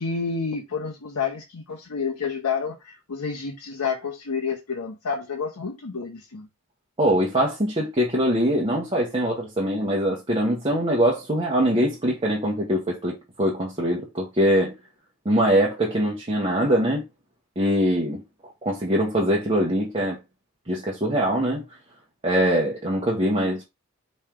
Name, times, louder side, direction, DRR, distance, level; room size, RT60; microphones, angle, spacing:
voice 1, 0.0-6.5, left 5 dB, 85° left, 0.9 m, -29 dB
voice 2, 7.0-14.7 15.2-17.0 17.6-18.2 18.6-20.2 20.7-21.6 22.2-23.6, equal, 25° right, 1.0 m, -23 dB
4.4 x 3.2 x 3.6 m
head